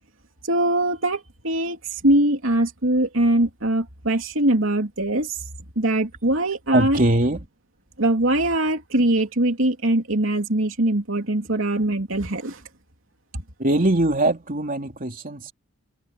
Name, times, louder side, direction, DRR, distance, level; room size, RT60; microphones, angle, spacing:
voice 1, 0.4-5.4 5.7-7.0 8.0-12.6 13.3-13.4, right 1 dB, 70° right, 3.3 m, -22 dB
voice 2, 6.7-7.5 13.6-15.5, right 1 dB, 45° right, 3.1 m, -21 dB
head